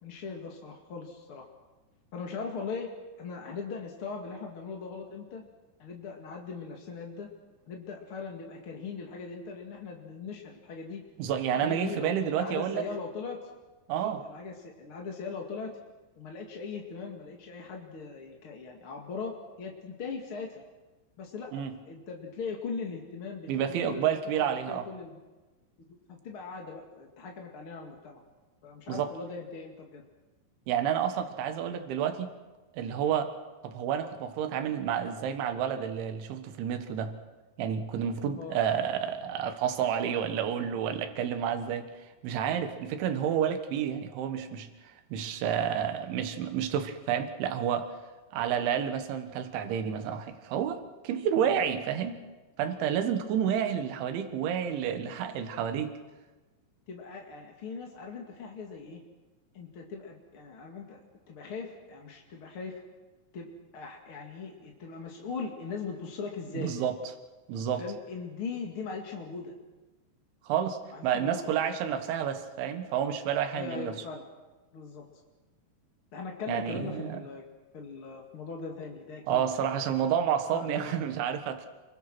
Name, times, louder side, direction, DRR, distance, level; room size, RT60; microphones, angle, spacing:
voice 1, 0.0-1.4 2.1-2.9 3.2-5.4 5.8-7.3 7.7-11.0 11.5-13.5 13.9-15.7 16.2-20.6 21.2-25.2 26.1-28.2 28.6-30.0 38.3-38.6 51.4-51.7 56.9-59.0 59.5-61.0 61.3-62.8 63.3-66.7 67.8-69.6 70.9-71.6 71.9-72.0 73.5-74.3 74.7-75.0 76.1-77.4 77.7-79.4 79.7-79.8 80.5-81.0, left 4 dB, 40° left, 1 dB, 2.1 m, -40 dB
voice 2, 11.2-12.8 13.9-14.2 21.5-21.8 23.5-24.9 28.9-29.1 30.7-32.3 32.7-33.3 33.6-37.1 37.6-41.9 42.2-44.7 45.1-47.9 48.3-52.2 52.6-55.9 66.6-67.0 67.5-67.8 70.5-73.9 76.5-77.2 79.3-81.7, right 8 dB, 90° right, 8 dB, 4.0 m, -30 dB
28.5 x 22.5 x 6.2 m, 1.2 s
omnidirectional pair, 5.2 m